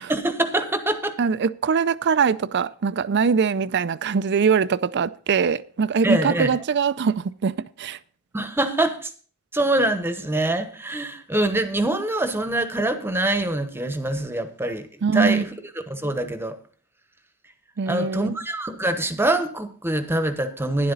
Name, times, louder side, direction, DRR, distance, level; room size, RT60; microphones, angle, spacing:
voice 1, 0.1-1.1 6.0-6.6 8.3-9.1 9.5-15.5 15.9-16.6 17.9-20.9, right 1 dB, 10° right, 1.0 m, -24 dB
voice 2, 1.2-8.0 15.0-15.4 17.8-18.3, right 5 dB, 55° right, 0.4 m, -22 dB
12.0 x 10.5 x 4.0 m
head